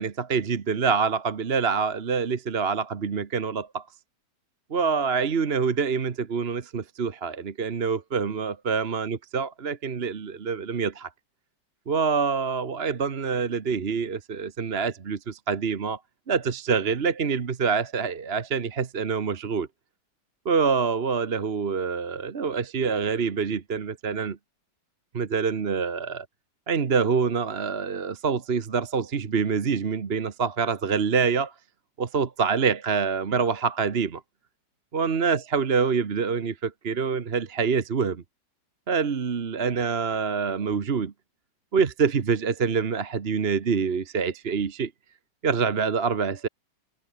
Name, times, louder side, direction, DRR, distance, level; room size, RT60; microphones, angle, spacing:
voice 1, 0.0-3.8 4.7-11.1 11.9-16.0 16.3-19.7 20.4-24.4 25.1-26.3 26.7-31.5 32.0-34.2 34.9-38.2 38.9-41.1 41.7-44.9 45.4-46.5, right 5 dB, 40° right, 1.3 m, -26 dB
omnidirectional pair, 1.9 m